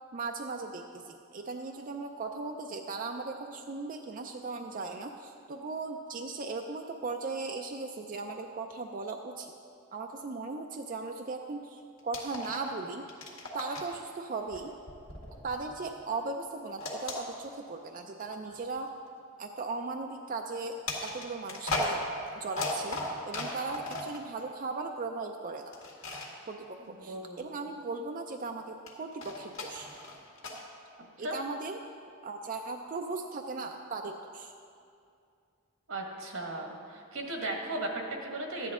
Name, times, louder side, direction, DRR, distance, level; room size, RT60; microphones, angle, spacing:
voice 1, 0.1-9.5 9.9-13.0 13.5-14.8 15.4-18.9 19.4-22.0 22.4-23.0 23.2-25.8 26.5-29.9 31.2-31.8 32.2-34.5, right 3 dB, 40° right, 4 dB, 0.4 m, -37 dB
sound 1, 12.1-12.8 13.0-14.0 14.5-16.0 16.8-17.9 18.5-18.6 20.9-24.2 25.7-26.3 28.9-30.6, left 2 dB, 65° left, 1.9 m, -36 dB
voice 2, 26.9-27.5 31.2-31.4 35.9-38.7, right 2 dB, 85° right, 1 dB, 1.7 m, -36 dB
13.5 x 10.0 x 3.7 m, 2.4 s
head